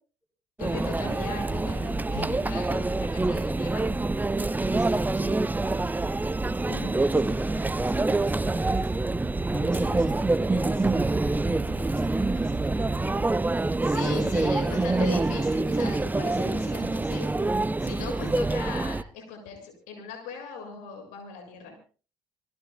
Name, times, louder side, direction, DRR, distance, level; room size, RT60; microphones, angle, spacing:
voice 1, 0.6-3.9 4.6-5.3 13.8-17.5 17.8-21.8, left 5 dB, 65° left, 4 dB, 7.2 m, -39 dB
Conversation / Chatter / Crowd, 0.6-19.0, right 2 dB, 10° right, 0.7 m, -26 dB
voice 2, 6.7-9.1 9.5-13.3 13.9-15.2, equal, 5° left, 5 dB, 4.1 m, -39 dB
28.0 x 18.5 x 2.4 m, 0.37 s
figure-of-eight pair, 50°, 14 cm